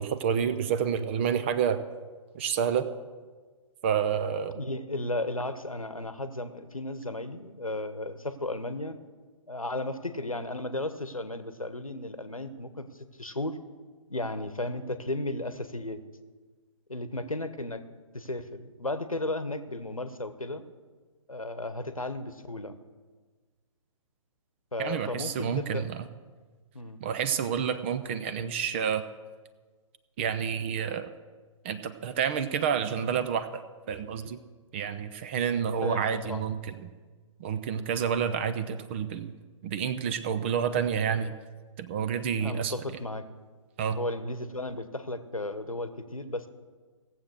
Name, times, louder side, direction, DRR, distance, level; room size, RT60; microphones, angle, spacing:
voice 1, 0.0-1.8 2.3-2.9 3.8-4.6 24.8-26.1 27.0-29.0 30.2-31.1 31.6-33.6 33.9-34.4 34.7-36.9 37.4-39.3 39.6-41.3 41.8-42.7 43.8-44.0, right 7 dB, 20° right, 11 dB, 0.5 m, -29 dB
voice 2, 4.5-9.0 9.5-12.9 13.2-13.6 14.1-16.0 16.9-17.8 18.1-20.6 21.3-22.8 24.7-25.9 26.7-27.0 35.8-36.5 42.4-43.2 43.9-46.5, left 2 dB, 85° left, 11 dB, 1.1 m, -34 dB
17.5 x 7.5 x 6.3 m, 1.4 s
figure-of-eight pair, 130°, 17 cm